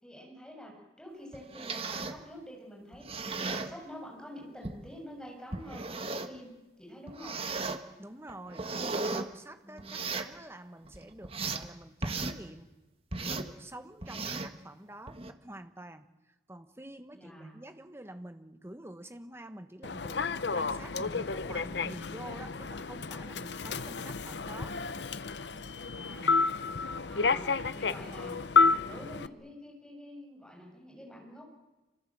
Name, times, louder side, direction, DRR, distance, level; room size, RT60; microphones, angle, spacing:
voice 1, 0.0-7.4 9.6-10.1 17.1-17.5 25.9-26.4 27.0-28.4 28.6-31.5, equal, 5° left, 0 dB, 7.1 m, -47 dB
Chalk on sidewalk, 1.3-2.2 2.9-3.7 4.6-4.8 5.5-6.4 7.1-7.8 8.3-9.3 9.8-10.3 10.9-11.7 12.0-12.4 13.1-13.5 14.0-14.6 15.1-15.3, right 3 dB, 35° right, 1.6 m, -35 dB
voice 2, 8.0-8.7 9.1-12.7 13.2-24.8, right 1 dB, 15° right, 9 dB, 1.4 m, -47 dB
Human voice / Subway metro underground, 19.8-29.3, left 4 dB, 75° left, 0.9 m, -30 dB
27.0 x 25.0 x 7.7 m, 1.1 s
head